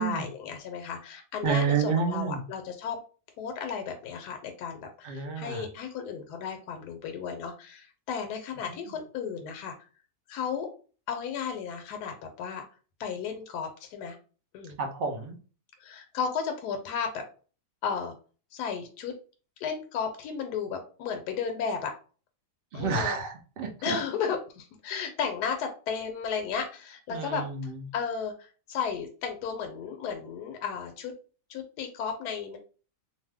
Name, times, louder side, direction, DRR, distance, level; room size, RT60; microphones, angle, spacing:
voice 1, 0.0-3.0 3.4-9.7 10.3-10.7 11.1-12.7 13.0-14.2 14.5-14.8 15.8-17.2 17.8-18.1 18.5-19.1 19.6-21.9 22.7-23.2 23.8-27.4 27.9-31.1 31.5-32.6, left 6 dB, 80° left, 5 dB, 1.1 m, -34 dB
voice 2, 1.4-2.4 5.0-5.6 14.8-15.3 22.7-23.7 27.1-27.5, right 5 dB, 65° right, 3 dB, 0.5 m, -29 dB
2.6 x 2.3 x 3.3 m, 0.38 s
omnidirectional pair, 1.7 m